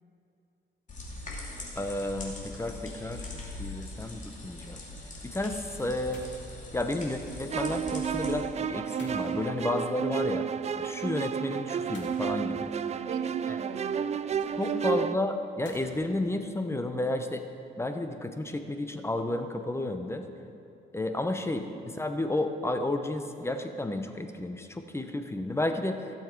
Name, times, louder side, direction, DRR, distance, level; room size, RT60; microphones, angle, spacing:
sound 1, 0.9-8.3, left 2 dB, 40° left, 2.6 m, -42 dB
voice 1, 1.7-3.2 3.6-4.8 5.3-6.2 6.7-10.5 10.8-12.7 14.6-17.4 17.8-20.3 20.9-26.0, left 2 dB, 15° left, 7 dB, 0.8 m, -32 dB
sound 2, 6.1-6.8 9.0-9.9 11.9-12.9 15.6-16.1, left 2 dB, 65° left, 2.5 m, -51 dB
sound 3, 7.5-15.2, right 7 dB, 35° right, 0.3 m, -31 dB
voice 2, 13.0-15.1, right 6 dB, 75° right, 8 dB, 0.8 m, -42 dB
16.0 x 7.2 x 4.6 m, 2.7 s
cardioid pair, 90°, 20 cm